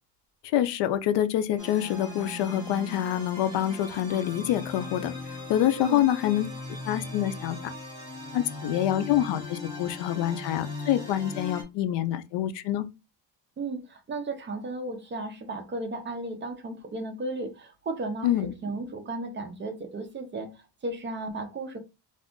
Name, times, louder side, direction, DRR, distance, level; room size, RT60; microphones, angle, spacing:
voice 1, 0.4-5.1 5.5-7.6 8.3-12.9 18.2-18.5, left 12 dB, 70° left, 0.5 m, -26 dB
sound 1, 1.6-11.6, left 3 dB, 5° left, 1.2 m, -38 dB
voice 2, 13.6-18.3 18.6-21.8, right 2 dB, 25° right, 0.5 m, -34 dB
2.5 x 2.3 x 3.6 m
cardioid pair, 150°, 44 cm